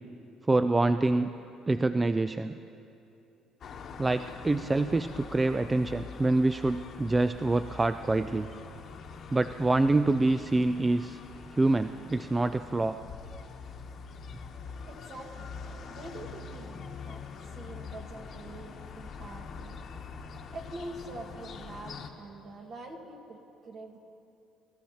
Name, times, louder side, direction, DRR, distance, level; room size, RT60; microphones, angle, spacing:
voice 1, 0.5-1.3 1.7-2.6 4.0-8.5 9.3-11.2 11.5-13.0, right 2 dB, 20° right, 10 dB, 0.3 m, -26 dB
sound 1, 3.6-22.1, left 5 dB, 55° left, 1.0 m, -44 dB
voice 2, 14.5-19.8 20.2-24.0, right 2 dB, 55° right, 2 dB, 1.9 m, -45 dB
23.0 x 13.5 x 3.0 m, 2.7 s
cardioid pair, 95°, 0 cm